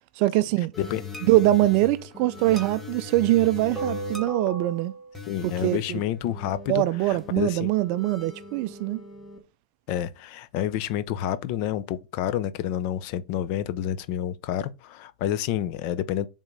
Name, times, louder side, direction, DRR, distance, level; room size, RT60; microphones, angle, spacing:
voice 1, 0.2-0.7 1.2-4.9 5.4-6.0 6.7-9.0, right 17 dB, 50° right, 0.3 m, -23 dB
sound 1, 0.7-9.4, left 1 dB, 5° left, 1.3 m, -38 dB
voice 2, 5.3-7.7 9.9-16.3, left 11 dB, 50° left, 0.6 m, -29 dB
5.1 x 3.6 x 5.1 m
hypercardioid pair, 130°, 4 cm